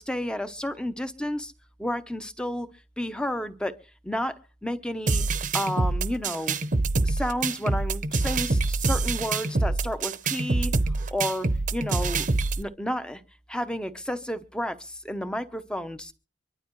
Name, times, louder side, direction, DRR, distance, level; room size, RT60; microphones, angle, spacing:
voice 1, 0.0-1.5 1.8-2.7 3.0-3.8 4.0-5.2 5.5-6.6 7.0-10.7 11.1-12.3 12.6-13.2 13.5-16.1, left 1 dB, 5° left, 10 dB, 0.9 m, -31 dB
sound 1, 5.1-12.6, right 3 dB, 45° right, 0.9 m, -26 dB
24.5 x 12.0 x 3.1 m, 0.35 s
head